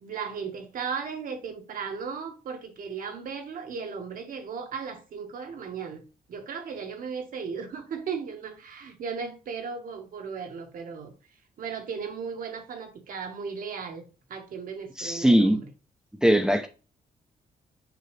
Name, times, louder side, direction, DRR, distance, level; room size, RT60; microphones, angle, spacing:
voice 1, 0.0-6.0 6.3-11.1 11.6-15.6, right 6 dB, 65° right, 1.5 m, -36 dB
voice 2, 15.0-15.6 16.2-16.7, right 1 dB, 5° right, 0.6 m, -20 dB
6.7 x 5.1 x 3.3 m
wide cardioid pair, 155°, 15 cm